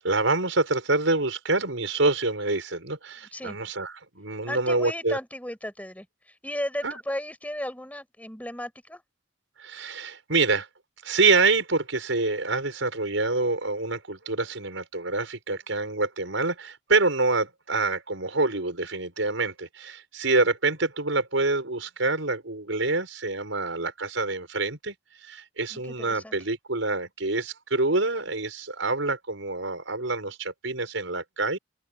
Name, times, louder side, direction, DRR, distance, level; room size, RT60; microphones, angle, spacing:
voice 1, 0.0-5.2 6.8-7.0 9.6-10.7 11.0-24.9 25.2-31.6, right 3 dB, 80° right, 5.6 m, -26 dB
voice 2, 4.4-9.0 25.7-26.4, left 1 dB, 10° left, 6.7 m, -35 dB
open air
head